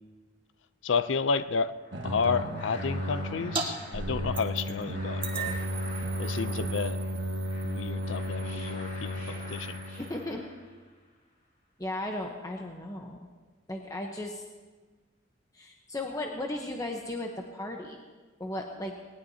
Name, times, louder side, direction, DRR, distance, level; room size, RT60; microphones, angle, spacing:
voice 1, 0.8-1.7 2.0-5.6 6.2-7.0 7.6-9.8, left 5 dB, 70° left, 13 dB, 0.5 m, -31 dB
sound 1, 1.6-11.0, left 1 dB, 45° left, 4.9 m, -47 dB
sound 2, 1.9-10.5, equal, 65° right, 1.4 m, -34 dB
sound 3, 3.6-3.7 3.9-4.8 5.2-10.3, right 4 dB, 30° right, 1.9 m, -39 dB
voice 2, 10.0-10.4 11.8-13.2 13.7-14.4 15.5-18.0 18.4-18.9, left 1 dB, 20° left, 1 dB, 0.9 m, -36 dB
19.5 x 19.0 x 2.8 m, 1.4 s
head